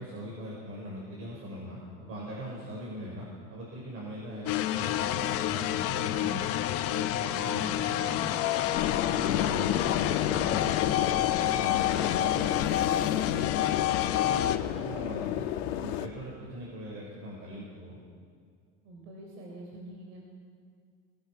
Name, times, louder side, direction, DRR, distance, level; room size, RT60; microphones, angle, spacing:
voice 1, 0.0-6.5 6.9-8.2 9.0-13.8 14.2-15.5 15.8-18.0, equal, 45° right, -4 dB, 5.6 m, -41 dB
sound 1, 4.5-14.6, left 12 dB, 50° left, 1.1 m, -29 dB
voice 2, 7.4-8.9 18.8-20.2, right 2 dB, 80° right, 0 dB, 4.1 m, -46 dB
sound 2, 8.7-16.1, left 11 dB, 90° left, 1.4 m, -31 dB
22.0 x 20.0 x 5.9 m, 2.1 s
cardioid pair, 145°, 31 cm